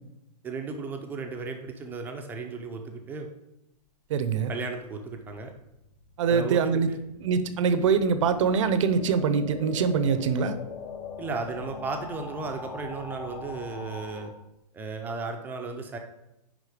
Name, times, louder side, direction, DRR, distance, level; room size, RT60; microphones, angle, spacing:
voice 1, 0.4-3.3 4.3-5.5 6.3-7.0 11.2-14.3 14.7-16.0, right 4 dB, 10° right, 4 dB, 0.6 m, -35 dB
voice 2, 4.1-4.5 6.2-6.9 7.2-10.5, right 6 dB, 50° right, 11 dB, 0.7 m, -24 dB
sound 1, 5.5-14.3, left 5 dB, 60° left, 1.9 m, -41 dB
10.0 x 3.7 x 5.0 m, 0.86 s
hypercardioid pair, 155°, 21 cm